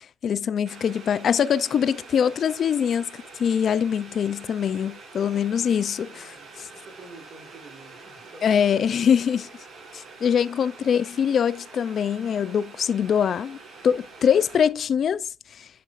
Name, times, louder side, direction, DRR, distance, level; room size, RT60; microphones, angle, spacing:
voice 1, 0.0-3.1 3.4-6.3 8.4-9.4 10.2-13.6 13.8-15.7, left 8 dB, 60° left, 0.4 m, -23 dB
Boiling, 0.6-14.7, right 3 dB, 80° right, 3.8 m, -46 dB
voice 2, 6.0-8.7 9.3-9.4, right 3 dB, 60° right, 4.5 m, -49 dB
8.4 x 5.6 x 2.5 m
cardioid pair, 90°, 0 cm